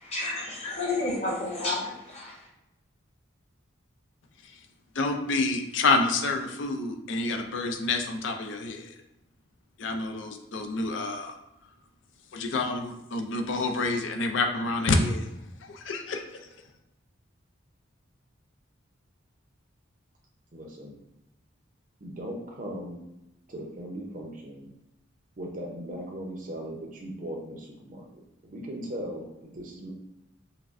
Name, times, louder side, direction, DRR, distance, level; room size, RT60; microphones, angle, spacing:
voice 1, 0.0-2.3, left 2 dB, 30° left, -5 dB, 1.1 m, -31 dB
voice 2, 4.9-8.9 9.8-11.3 12.3-15.3 15.6-16.2, left 3 dB, 65° left, 4 dB, 0.4 m, -28 dB
voice 3, 20.5-21.0 22.0-23.0 23.5-24.6 25.4-28.0 28.4-29.9, equal, 40° right, 0 dB, 0.6 m, -38 dB
5.8 x 2.1 x 2.5 m, 0.88 s
head